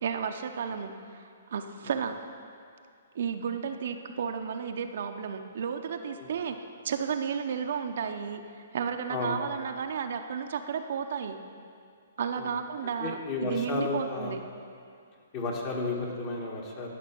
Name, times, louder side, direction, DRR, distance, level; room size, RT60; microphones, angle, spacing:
voice 1, 0.0-1.2 1.5-2.2 3.1-6.6 6.8-8.4 8.7-11.4 12.2-14.4, right 7 dB, 65° right, 6 dB, 0.7 m, -33 dB
voice 2, 13.0-14.3 15.3-16.9, left 3 dB, 30° left, 0 dB, 1.7 m, -32 dB
12.5 x 6.0 x 6.0 m, 2.3 s
hypercardioid pair, 150°, 0 cm